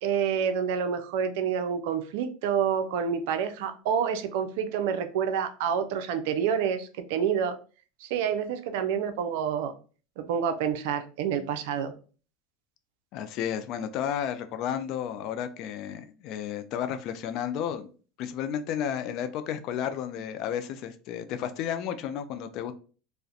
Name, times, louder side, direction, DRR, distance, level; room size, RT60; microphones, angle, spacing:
voice 1, 0.0-7.5 8.0-9.7 10.2-11.9, right 7 dB, 75° right, 8 dB, 0.4 m, -28 dB
voice 2, 13.1-17.9 18.2-22.7, left 9 dB, 55° left, 9 dB, 0.3 m, -32 dB
2.4 x 2.1 x 2.6 m, 0.38 s
supercardioid pair, 115°, 0 cm